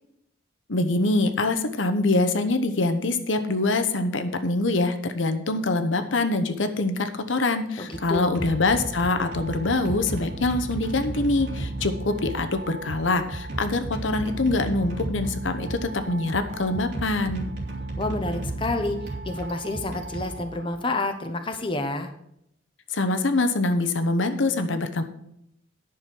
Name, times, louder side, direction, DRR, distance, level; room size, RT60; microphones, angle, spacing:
voice 1, 0.7-17.4 22.9-25.0, left 2 dB, 75° left, 8 dB, 1.0 m, -24 dB
voice 2, 7.8-8.3 18.0-22.1, left 2 dB, 25° left, 6 dB, 0.9 m, -29 dB
sound 1, 7.9-21.0, right 2 dB, 60° right, 2.6 m, -34 dB
10.0 x 6.4 x 6.1 m, 0.76 s
head